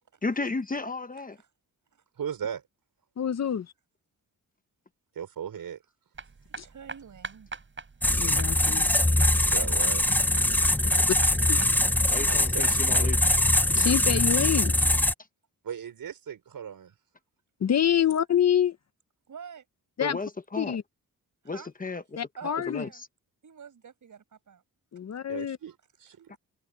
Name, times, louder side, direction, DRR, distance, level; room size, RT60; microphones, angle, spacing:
voice 1, 0.2-1.4 12.1-13.2 20.0-20.8 21.4-22.0 22.7-23.0 26.3-26.4, left 3 dB, 25° left, 1.0 m, -33 dB
voice 2, 2.2-2.6 5.2-5.8 9.5-10.0 12.2-13.2 15.6-16.9 25.3-26.3, right 8 dB, 70° right, 5.3 m, -37 dB
voice 3, 3.2-3.7 6.6-6.7 8.1-8.9 11.5-11.6 13.7-14.7 17.6-18.8 20.0-20.2 20.6-20.8 22.2-22.8 24.9-25.6, left 9 dB, 45° left, 0.8 m, -26 dB
sound 1, 6.2-13.7, right 4 dB, 35° right, 5.0 m, -41 dB
voice 4, 6.5-7.5 9.1-9.6 17.8-18.2 19.3-19.7 21.4-21.7 22.4-23.0 23.4-24.6, right 7 dB, 55° right, 6.1 m, -47 dB
sound 2, 8.0-15.1, left 1 dB, 5° left, 0.5 m, -23 dB
wide cardioid pair, 125°, 36 cm